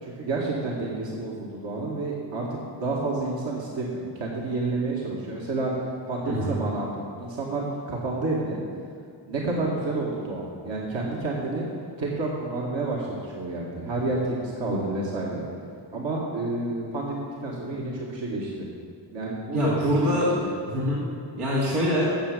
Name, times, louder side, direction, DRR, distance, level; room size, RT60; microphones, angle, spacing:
voice 1, 0.0-5.7 6.1-8.6 9.3-11.7 12.0-15.4 15.9-18.7 19.1-19.7, right 2 dB, 60° right, -4 dB, 2.1 m, -29 dB
voice 2, 6.2-6.6 19.5-20.3 20.7-21.0 21.4-22.1, equal, 85° right, -6 dB, 2.6 m, -24 dB
10.0 x 7.5 x 6.9 m, 2.3 s
supercardioid pair, 50°, 49 cm